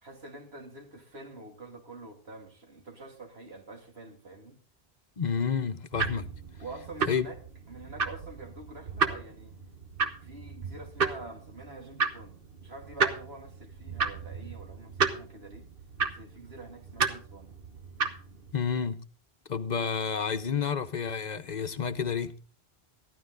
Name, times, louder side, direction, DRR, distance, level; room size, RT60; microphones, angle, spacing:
voice 1, 0.0-4.6 6.6-7.4 7.7-9.5 10.2-15.7 16.2-17.5, right 2 dB, 85° right, 2.8 m, -46 dB
voice 2, 5.2-6.3 7.0-7.3 18.5-19.0 19.5-22.3, left 6 dB, 50° left, 0.8 m, -30 dB
sound 1, 5.9-18.5, right 5 dB, 65° right, 1.3 m, -33 dB
14.0 x 12.0 x 3.9 m
omnidirectional pair, 1.0 m